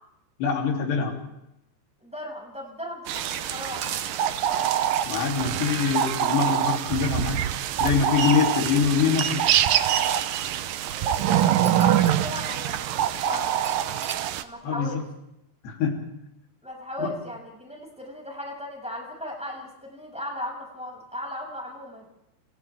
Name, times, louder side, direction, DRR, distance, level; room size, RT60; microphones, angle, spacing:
voice 1, 0.4-1.2 5.1-7.5 7.8-9.5 14.6-15.0 15.6-16.1 17.0-17.1, left 6 dB, 75° left, 0 dB, 5.3 m, -24 dB
voice 2, 2.0-3.8 10.8-13.5 14.4-15.0 16.6-22.1, left 1 dB, ahead, -1 dB, 6.4 m, -37 dB
sound 1, 3.1-4.3 4.9-5.2 6.0-6.2 6.6-6.8 7.5-8.7 9.4-9.5 10.8-12.2 12.5-12.6 13.6-14.2, right 4 dB, 40° right, 1.8 m, -43 dB
sound 2, 3.1-14.4, right 10 dB, 75° right, 2.1 m, -25 dB
29.5 x 29.5 x 3.6 m, 0.83 s
omnidirectional pair, 4.9 m